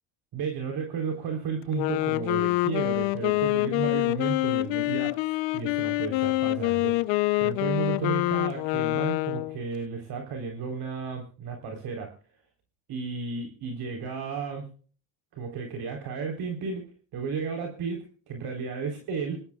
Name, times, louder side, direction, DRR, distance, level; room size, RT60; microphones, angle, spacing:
voice 1, 0.3-7.0 7.4-12.1 12.9-14.7 15.3-16.9 17.1-19.4, right 5 dB, 55° right, 3 dB, 4.1 m, -33 dB
Wind instrument woodwind instrument, 1.6-9.6, left 21 dB, 70° left, 0.9 m, -26 dB
26.5 x 13.0 x 2.4 m, 0.42 s
supercardioid pair, 95°, 47 cm